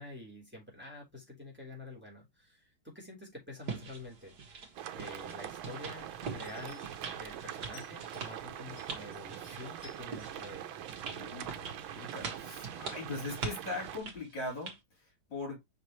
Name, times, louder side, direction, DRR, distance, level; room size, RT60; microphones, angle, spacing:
voice 1, 0.0-4.4 4.9-6.8 7.1-10.8, left 2 dB, 5° right, 3.6 m, -48 dB
sound 1, 3.6-14.8, right 5 dB, 55° right, 2.3 m, -44 dB
sound 2, 4.8-14.0, right 10 dB, 85° right, 1.6 m, -44 dB
sound 3, 6.4-7.1 7.6-8.3 8.7-10.5 10.8-11.6 12.1-12.2, left 7 dB, 35° left, 3.3 m, -59 dB
voice 2, 11.0-15.6, left 2 dB, 65° left, 4.5 m, -41 dB
6.3 x 5.7 x 3.0 m
omnidirectional pair, 2.1 m